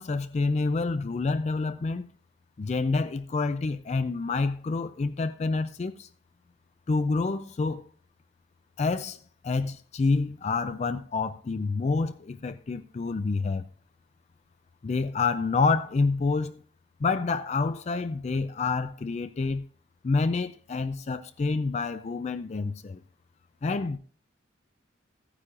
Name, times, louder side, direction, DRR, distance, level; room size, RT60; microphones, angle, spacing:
voice 1, 0.0-2.1 2.6-6.1 6.9-7.9 8.8-13.6 14.8-16.6 17.0-19.6 20.0-23.0 23.6-24.0, left 4 dB, 35° left, 0.3 m, -28 dB
14.5 x 9.7 x 2.5 m
head